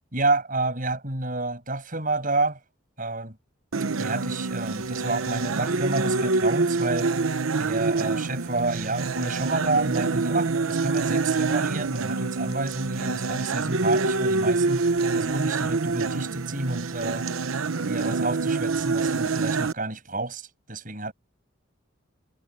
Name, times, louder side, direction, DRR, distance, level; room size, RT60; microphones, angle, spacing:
voice 1, 0.1-2.6 3.0-3.4 4.0-7.1 7.6-17.3 17.8-21.1, right 2 dB, 40° right, 7.8 m, -29 dB
sound 1, 3.7-19.7, right 3 dB, 90° right, 0.9 m, -26 dB
head